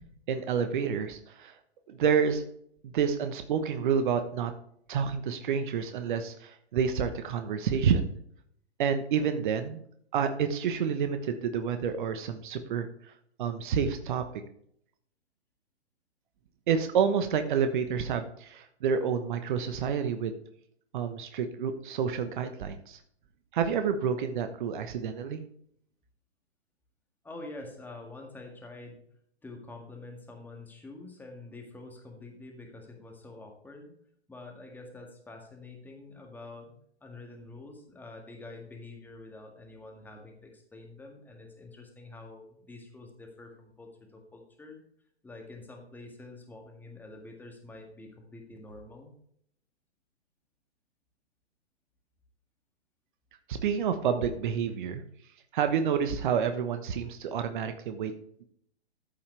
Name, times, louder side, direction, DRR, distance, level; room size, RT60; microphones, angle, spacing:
voice 1, 0.3-1.6 1.9-2.4 2.8-4.5 4.9-8.1 8.8-9.8 10.1-13.1 13.4-14.2 16.7-20.4 20.9-23.0 23.5-25.4 53.5-55.0 55.5-58.1, right 7 dB, 45° right, 8 dB, 1.1 m, -29 dB
voice 2, 27.2-29.0 29.4-33.9 34.3-36.7 37.0-44.8 45.2-49.1, left 2 dB, 5° left, 2 dB, 1.8 m, -47 dB
14.0 x 5.7 x 3.3 m, 0.67 s
figure-of-eight pair, 125°, 33 cm